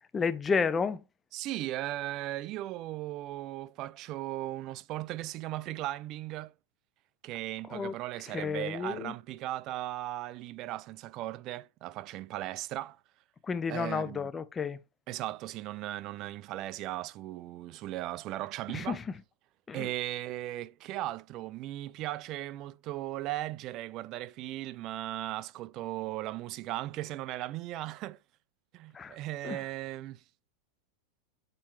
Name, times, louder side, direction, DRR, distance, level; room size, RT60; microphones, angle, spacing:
voice 1, 0.1-1.0 7.7-7.9 8.3-9.1 13.5-14.8 18.7-19.1 19.7-19.9 28.9-29.1 29.4-29.6, left 5 dB, 20° left, 0.6 m, -31 dB
voice 2, 1.3-6.5 7.2-13.0 13.7-14.3 15.1-19.0 19.7-28.2 28.7-30.2, right 15 dB, 40° right, 0.4 m, -37 dB
7.5 x 4.3 x 3.1 m
supercardioid pair, 135°, 0 cm